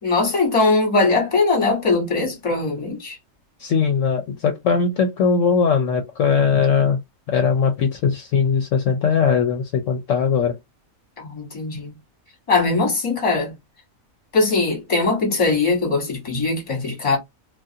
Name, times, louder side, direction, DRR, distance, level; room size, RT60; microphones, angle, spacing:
voice 1, 0.0-3.2 11.2-11.9 12.5-13.5 14.3-17.2, left 3 dB, 25° left, 1.1 m, -20 dB
voice 2, 3.6-7.0 7.3-10.6, left 6 dB, 70° left, 0.9 m, -20 dB
2.4 x 2.4 x 2.7 m
omnidirectional pair, 1.4 m